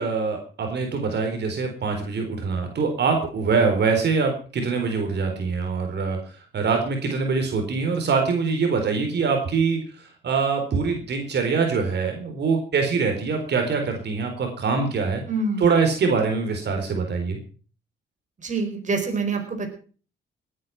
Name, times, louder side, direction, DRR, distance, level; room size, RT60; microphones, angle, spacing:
voice 1, 0.0-15.2 15.6-17.4, right 5 dB, 60° right, 4 dB, 4.2 m, -24 dB
voice 2, 15.3-15.7 18.4-19.7, right 3 dB, 40° right, 4 dB, 4.8 m, -26 dB
19.0 x 9.9 x 6.0 m, 0.40 s
cardioid pair, 90°, 20 cm